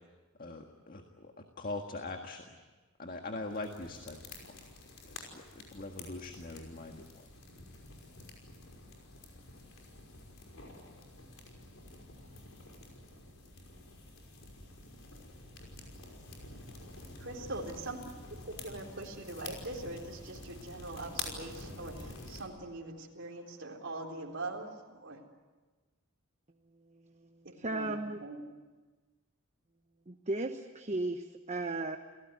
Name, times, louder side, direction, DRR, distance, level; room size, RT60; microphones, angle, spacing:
voice 1, 0.4-2.6 3.0-4.6 5.0-7.3, left 2 dB, 45° left, 4 dB, 1.7 m, -42 dB
sound 1, 3.5-22.4, left 3 dB, 70° left, 5.6 m, -48 dB
voice 2, 17.2-18.0 18.6-25.2 27.4-28.4, right 2 dB, 60° right, -1 dB, 3.8 m, -42 dB
voice 3, 27.6-28.2 30.1-32.0, right 2 dB, 35° right, 6 dB, 1.0 m, -35 dB
29.5 x 17.5 x 9.6 m, 1.3 s
head